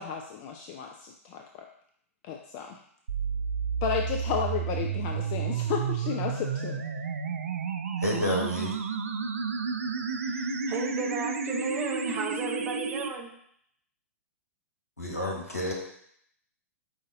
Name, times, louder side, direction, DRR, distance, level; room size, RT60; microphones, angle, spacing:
voice 1, 0.0-1.7 2.2-2.8 3.8-6.8, left 8 dB, 35° left, 3 dB, 0.3 m, -33 dB
sound 1, 3.1-13.1, right 6 dB, 65° right, 0.4 m, -31 dB
voice 2, 8.0-8.8 15.0-15.7, left 1 dB, 85° left, -2 dB, 1.2 m, -30 dB
voice 3, 10.2-13.3, right 4 dB, 25° right, 0 dB, 0.8 m, -34 dB
4.9 x 2.6 x 3.8 m, 0.68 s
figure-of-eight pair, 105°, 8 cm